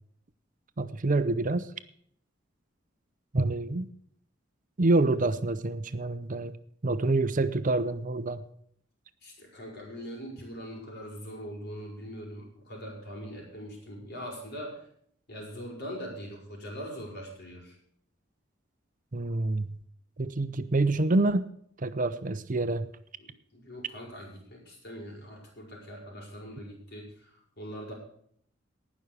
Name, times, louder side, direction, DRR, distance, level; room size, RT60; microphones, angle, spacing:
voice 1, 0.8-1.7 3.3-3.9 4.8-6.5 6.8-8.4 19.1-19.7 20.2-21.5 21.8-22.9, right 2 dB, 45° right, 13 dB, 0.7 m, -27 dB
voice 2, 9.2-14.9 15.3-17.8 23.2-27.9, equal, 55° left, -1 dB, 5.9 m, -42 dB
19.0 x 6.3 x 6.8 m, 0.64 s
head